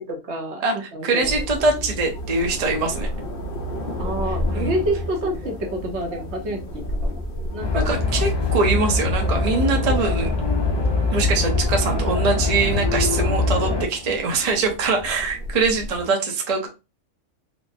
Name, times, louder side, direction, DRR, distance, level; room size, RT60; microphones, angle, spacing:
voice 1, 0.1-1.3 4.0-7.2 7.5-7.9, right 1 dB, 65° right, 2 dB, 1.1 m, -28 dB
voice 2, 0.6-3.1 4.5-4.8 7.7-10.3 11.1-16.7, right 3 dB, 40° right, 2 dB, 0.7 m, -23 dB
sound 1, 1.2-16.0, left 1 dB, 50° left, 0.9 m, -32 dB
sound 2, 7.6-13.8, left 3 dB, 35° left, 0.4 m, -22 dB
4.4 x 2.0 x 2.6 m, 0.27 s
omnidirectional pair, 1.3 m